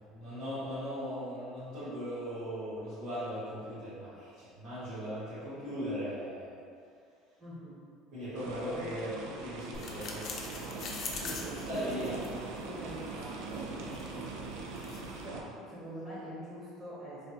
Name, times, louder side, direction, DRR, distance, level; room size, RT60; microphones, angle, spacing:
voice 1, 0.0-6.5 8.1-10.3 11.7-12.4, equal, 55° right, -15 dB, 1.4 m, -38 dB
voice 2, 7.4-7.8 11.1-12.4 12.6-13.7 15.2-17.3, right 1 dB, 10° right, -10 dB, 0.6 m, -44 dB
sound 1, 8.4-15.4, right 3 dB, 80° right, 0.3 m, -41 dB
sound 2, 9.7-15.3, left 3 dB, 35° left, 0.3 m, -44 dB
3.4 x 2.0 x 2.7 m, 2.3 s
cardioid pair, 170°, 0 cm